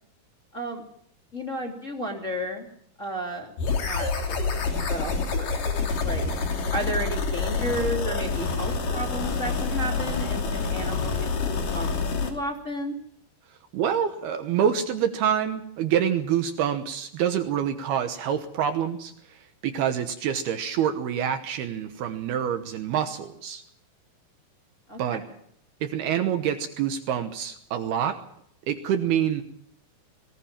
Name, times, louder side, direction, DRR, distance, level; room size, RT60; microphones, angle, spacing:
voice 1, 0.5-0.8 1.3-2.7 3.0-3.5 3.8-6.2 6.7-11.9 12.2-13.0 24.9-25.2, equal, 20° left, 1 dB, 2.4 m, -33 dB
sound 1, 3.6-12.3, left 4 dB, 50° left, 4.3 m, -27 dB
voice 2, 13.7-23.6 25.0-25.2 25.8-28.2 28.7-29.4, right 9 dB, 70° right, 8 dB, 2.7 m, -26 dB
21.0 x 19.0 x 7.4 m, 0.68 s
omnidirectional pair, 5.3 m